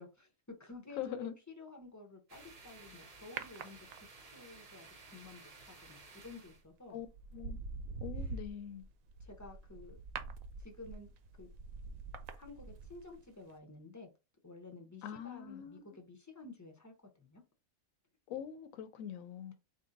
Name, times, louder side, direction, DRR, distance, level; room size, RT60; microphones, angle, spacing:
voice 1, 0.0-1.3 1.6-3.8 4.2-7.0 9.2-10.0 10.6-11.1 11.4-11.5 12.3-14.1 14.4-17.4, left 2 dB, 20° left, 0.6 m, -52 dB
voice 2, 1.0-1.3 6.9-7.1 7.3-7.6 8.0-8.8 15.0-15.8 18.3-19.5, left 9 dB, 75° left, 1.0 m, -43 dB
sound 1, 2.3-6.6, right 3 dB, 40° right, 0.6 m, -55 dB
sound 2, 3.4-4.4 6.3-6.5 7.0-13.2 13.5-13.6, right 4 dB, 75° right, 1.0 m, -45 dB
4.0 x 2.7 x 3.8 m
omnidirectional pair, 1.5 m